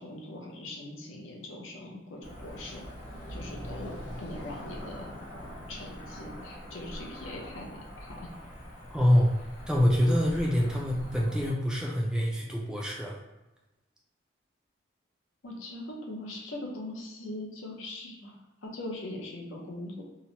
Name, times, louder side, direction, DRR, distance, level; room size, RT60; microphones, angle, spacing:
voice 1, 0.0-2.8 3.3-3.9 4.2-5.1 5.7-8.3 15.4-18.4 18.6-20.0, left 1 dB, 80° left, 0 dB, 0.6 m, -41 dB
Cricket / Motor vehicle (road), 2.2-11.5, equal, 40° left, 0.8 m, -43 dB
voice 2, 8.9-9.3 9.7-13.2, equal, 5° right, -3 dB, 0.3 m, -25 dB
2.8 x 2.0 x 2.8 m, 1.0 s
head